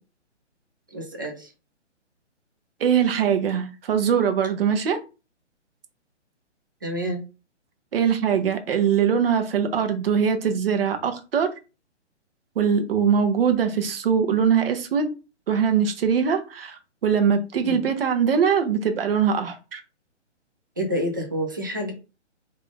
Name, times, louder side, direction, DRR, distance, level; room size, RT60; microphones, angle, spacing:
voice 1, 0.9-1.5 6.8-7.2 17.6-17.9 20.8-21.9, equal, 20° right, 0.4 m, -28 dB
voice 2, 2.8-5.0 7.9-11.5 12.6-15.1 15.5-19.8, right 7 dB, 50° right, 0.8 m, -22 dB
3.3 x 2.6 x 3.6 m
hypercardioid pair, 145°, 36 cm